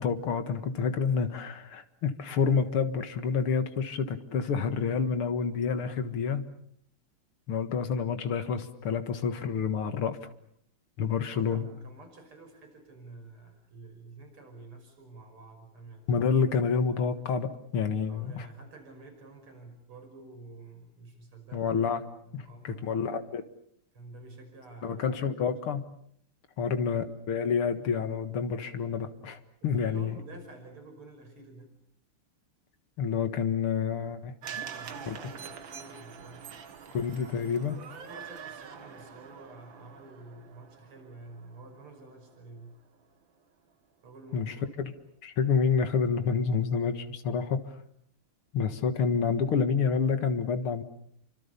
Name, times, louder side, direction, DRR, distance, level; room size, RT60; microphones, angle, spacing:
voice 1, 0.0-6.4 7.5-10.3 11.0-11.6 16.1-18.5 21.5-22.0 22.3-23.4 24.8-25.8 26.6-30.1 33.0-34.3 35.1-35.2 36.9-37.8 44.3-44.9 45.2-47.8 48.5-50.8, left 6 dB, 80° left, 9 dB, 2.6 m, -28 dB
voice 2, 11.2-16.1 18.1-21.7 22.2-23.2 23.9-25.6 26.6-26.8 29.6-31.7 34.4-36.6 37.2-37.4 37.8-42.8 44.0-44.7, right 2 dB, 80° right, 5 dB, 6.6 m, -49 dB
sound 1, 34.4-42.7 43.0-43.1, right 7 dB, 65° right, 2.4 m, -45 dB
30.0 x 25.0 x 6.9 m, 0.66 s
omnidirectional pair, 2.4 m